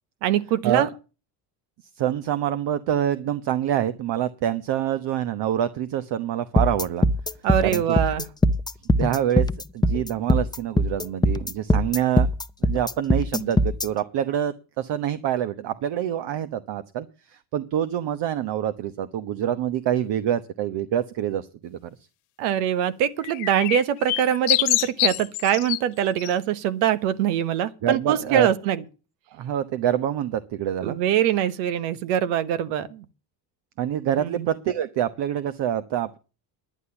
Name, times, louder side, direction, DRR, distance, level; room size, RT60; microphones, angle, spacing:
voice 1, 0.2-0.9 7.4-8.3 22.4-28.8 30.8-33.0 34.2-34.5, right 10 dB, 85° right, 1.4 m, -23 dB
voice 2, 2.0-7.1 7.6-8.0 9.0-9.5 9.7-12.3 12.6-21.9 27.8-28.5 29.3-31.0 33.8-36.2, right 10 dB, 60° right, 1.2 m, -26 dB
sound 1, 6.6-13.9, left 1 dB, 10° left, 0.7 m, -21 dB
sound 2, 23.2-25.8 26.2-26.3, left 19 dB, 80° left, 1.5 m, -25 dB
11.0 x 10.0 x 7.0 m
supercardioid pair, 95°, 48 cm